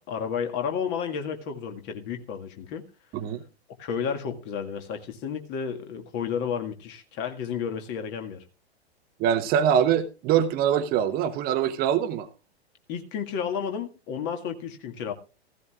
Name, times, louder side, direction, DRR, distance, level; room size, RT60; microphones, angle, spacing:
voice 1, 0.1-2.8 3.8-8.4 12.9-15.1, left 7 dB, 35° left, 5 dB, 1.8 m, -32 dB
voice 2, 9.2-12.3, right 9 dB, 30° right, 9 dB, 1.0 m, -23 dB
15.5 x 15.5 x 2.4 m, 0.32 s
figure-of-eight pair, 100°, 33 cm